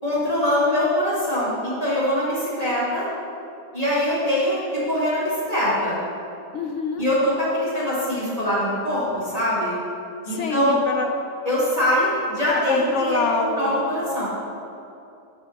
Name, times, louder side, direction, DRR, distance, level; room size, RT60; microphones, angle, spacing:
voice 1, 0.0-3.1 3.7-4.6 4.8-6.0 7.0-9.7 10.2-10.8 11.5-14.3, left 1 dB, 25° left, -10 dB, 2.1 m, -23 dB
voice 2, 6.5-7.0 10.2-11.1 12.7-13.9, left 3 dB, 65° left, 3 dB, 0.9 m, -26 dB
9.7 x 3.7 x 6.4 m, 2.7 s
omnidirectional pair, 1.5 m